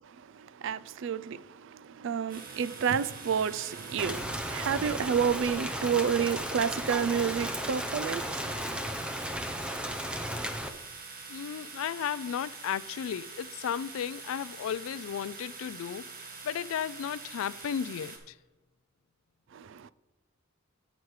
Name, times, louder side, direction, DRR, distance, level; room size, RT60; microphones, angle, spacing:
voice 1, 0.0-9.0 19.5-19.9, right 7 dB, 65° right, 0.4 m, -30 dB
sound 1, 2.3-18.2, right 4 dB, 45° right, 1.6 m, -45 dB
Rain, 4.0-10.7, equal, 5° right, 0.7 m, -35 dB
voice 2, 11.3-16.1 16.4-18.3, left 8 dB, 80° left, 0.3 m, -34 dB
17.5 x 6.1 x 3.2 m
head